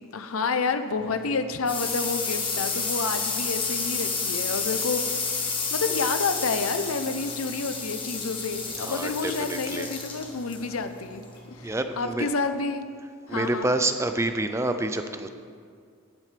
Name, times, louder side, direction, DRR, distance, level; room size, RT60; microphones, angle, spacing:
voice 1, 0.1-5.5 5.7-12.8 13.3-13.7, left 4 dB, 90° left, 9 dB, 0.7 m, -29 dB
sound 1, 0.9-12.2, left 4 dB, 25° left, 1.6 m, -31 dB
voice 2, 8.8-9.9 11.6-12.3 13.3-15.3, right 2 dB, 15° right, 8 dB, 0.5 m, -28 dB
14.5 x 10.5 x 3.4 m, 2.1 s
head